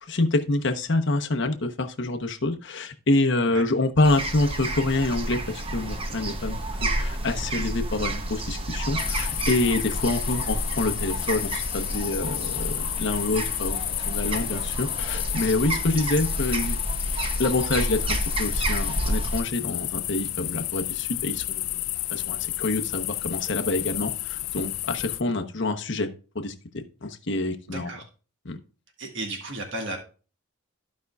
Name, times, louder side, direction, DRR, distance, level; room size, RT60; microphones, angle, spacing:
voice 1, 0.0-13.8 14.1-16.8 17.4-21.8 22.1-26.1 26.3-27.9 28.4-28.6, left 2 dB, 55° left, 5 dB, 0.9 m, -27 dB
sound 1, 4.0-19.4, right 1 dB, 25° right, 0.7 m, -30 dB
sound 2, 5.1-16.4, right 1 dB, 40° right, 1.1 m, -47 dB
sound 3, 9.0-25.2, left 16 dB, 75° left, 0.4 m, -31 dB
voice 2, 27.7-28.0 29.0-30.0, right 2 dB, 60° right, 1 dB, 1.6 m, -34 dB
15.0 x 5.2 x 2.4 m, 0.37 s
head